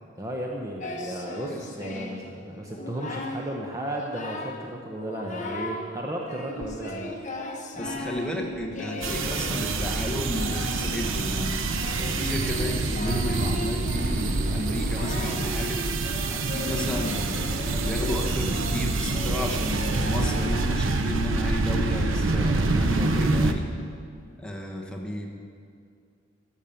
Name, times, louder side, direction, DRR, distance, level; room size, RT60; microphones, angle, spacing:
voice 1, 0.2-7.2, right 1 dB, 15° right, -1 dB, 0.8 m, -34 dB
Singing, 0.8-2.3 2.7-3.5 3.8-4.6 5.0-5.8 6.3-20.8, left 1 dB, 40° left, 1.3 m, -37 dB
voice 2, 7.7-11.6 11.9-15.8 16.3-17.3 17.8-23.7 24.4-25.3, left 1 dB, 5° left, 0 dB, 1.2 m, -33 dB
sound 1, 9.0-23.5, right 2 dB, 75° right, 0.8 m, -26 dB
sound 2, 14.0-16.1 16.6-18.8 19.3-21.4 21.9-23.2, right 3 dB, 50° right, 1.2 m, -42 dB
14.0 x 7.3 x 6.9 m, 2.3 s
head